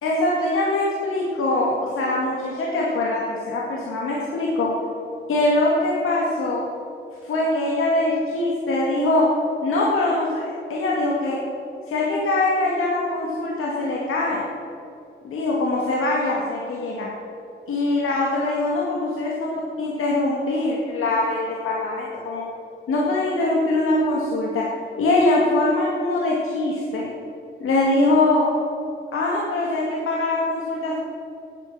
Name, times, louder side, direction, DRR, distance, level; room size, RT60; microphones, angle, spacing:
voice 1, 0.0-4.7 5.3-6.7 7.2-9.3 9.6-10.4 10.7-11.4 11.9-14.4 15.2-17.1 17.7-19.5 19.8-22.4 22.9-24.7 25.0-27.1 27.6-28.5 29.1-31.0, left 2 dB, 80° left, -3 dB, 2.1 m, -22 dB
13.5 x 9.4 x 7.1 m, 2.6 s
cardioid pair, 75°, 21 cm